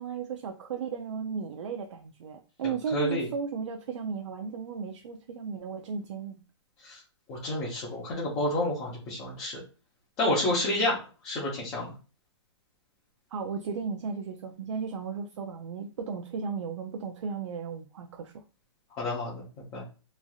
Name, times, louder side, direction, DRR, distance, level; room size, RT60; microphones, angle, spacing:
voice 1, 0.0-6.4 13.3-18.4, right 6 dB, 80° right, 4 dB, 0.4 m, -35 dB
voice 2, 2.9-3.3 6.8-7.0 7.3-9.6 10.2-11.0 11.2-11.9 19.0-19.4 19.7-19.8, left 1 dB, 20° left, -6 dB, 0.7 m, -29 dB
3.0 x 2.5 x 2.3 m, 0.35 s
hypercardioid pair, 165°, 15 cm